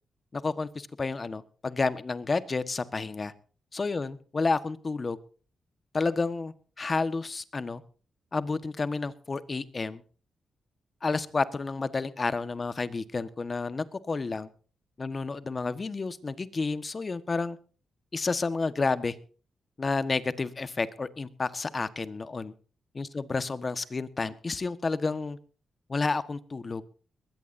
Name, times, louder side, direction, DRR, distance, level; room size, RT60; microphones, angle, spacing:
voice 1, 0.3-3.3 3.7-5.2 5.9-7.8 8.3-10.0 11.0-14.5 15.0-17.6 18.1-19.1 19.8-22.5 22.9-25.4 25.9-26.8, left 3 dB, 35° left, 13 dB, 1.4 m, -30 dB
21.5 x 17.0 x 2.7 m, 0.40 s
cardioid pair, 80°, 0 cm